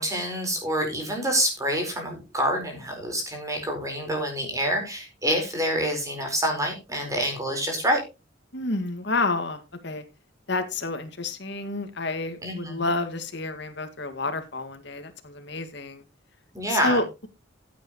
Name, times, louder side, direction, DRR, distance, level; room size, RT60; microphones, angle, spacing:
voice 1, 0.0-8.0 12.4-12.8 16.5-17.0, equal, 15° right, 2 dB, 4.5 m, -27 dB
voice 2, 8.5-10.0 10.5-16.0 16.7-17.3, left 2 dB, 65° left, 8 dB, 2.0 m, -29 dB
15.5 x 8.7 x 3.1 m, 0.27 s
head